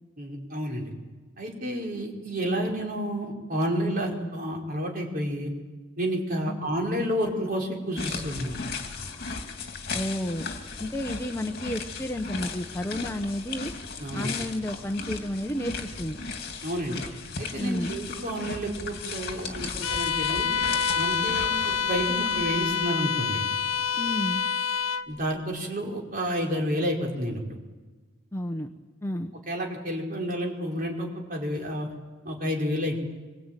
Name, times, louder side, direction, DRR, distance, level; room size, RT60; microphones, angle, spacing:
voice 1, 0.2-0.9 1.4-5.5 6.0-8.6 14.0-14.3 16.6-17.0 17.4-20.5 20.9-23.4 25.1-27.4 29.5-31.9 32.2-33.0, equal, 45° right, -1 dB, 5.0 m, -30 dB
sound 1, 8.0-22.9, left 4 dB, 50° left, 2.8 m, -36 dB
voice 2, 9.9-10.5 10.8-13.7 14.1-16.2 17.6-17.9 24.0-24.4 28.3-28.7 29.0-29.3, left 1 dB, 15° left, 5 dB, 1.0 m, -31 dB
Bowed string instrument, 19.8-25.1, left 6 dB, 80° left, 0.9 m, -27 dB
26.0 x 22.5 x 9.1 m, 1.3 s
head